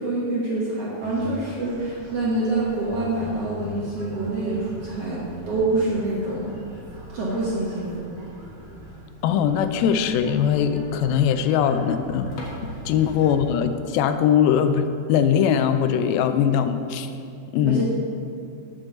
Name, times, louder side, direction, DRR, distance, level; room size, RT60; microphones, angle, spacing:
voice 1, 0.0-6.5 7.1-8.1 17.7-17.9, right 2 dB, 60° right, -6 dB, 1.7 m, -26 dB
sound 1, 1.0-13.5, equal, 25° right, 1.3 m, -41 dB
voice 2, 9.2-12.4 12.9-17.1 17.5-17.9, left 8 dB, 85° left, 9 dB, 2.3 m, -21 dB
sound 2, 12.3-14.2 14.5-14.6 15.1-15.3 15.7-15.8 16.1-16.2 16.9-17.2, left 2 dB, 55° left, 2.1 m, -43 dB
7.1 x 6.7 x 7.0 m, 2.5 s
omnidirectional pair, 4.3 m